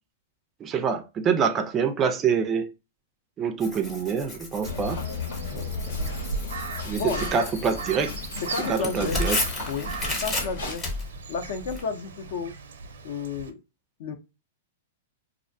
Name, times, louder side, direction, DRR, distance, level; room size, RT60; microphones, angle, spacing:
voice 1, 0.6-2.7 3.4-5.0 6.9-8.1 8.7-9.4, right 6 dB, 20° right, 0.3 m, -26 dB
Tearing, 3.6-11.8, left 2 dB, 20° left, 0.8 m, -34 dB
sound 1, 4.6-10.8, left 4 dB, 85° left, 1.1 m, -35 dB
Crow, 4.6-13.5, right 4 dB, 90° right, 0.5 m, -38 dB
voice 2, 5.5-5.8 7.0-7.3 8.5-9.2 9.6-9.9 10.2-10.8 11.3-12.5 13.0-13.6 14.0-14.2, left 5 dB, 60° left, 0.6 m, -32 dB
2.4 x 2.1 x 2.5 m
hypercardioid pair, 150°, 0 cm